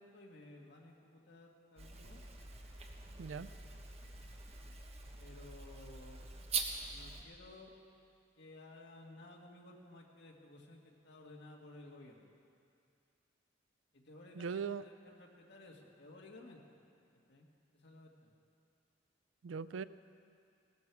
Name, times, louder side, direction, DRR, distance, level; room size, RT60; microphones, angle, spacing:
voice 1, 0.0-2.2 4.0-4.2 5.2-6.2 6.9-7.7 8.4-12.3 13.9-16.8 17.1-17.5 17.7-18.3, left 2 dB, 65° left, 0 dB, 1.8 m, -56 dB
sound 1, 1.8-7.2, right 4 dB, 35° right, 1.1 m, -44 dB
voice 2, 3.2-3.5 14.3-14.8 19.4-19.8, right 6 dB, 85° right, 15 dB, 0.4 m, -39 dB
17.5 x 13.0 x 4.7 m, 2.5 s
head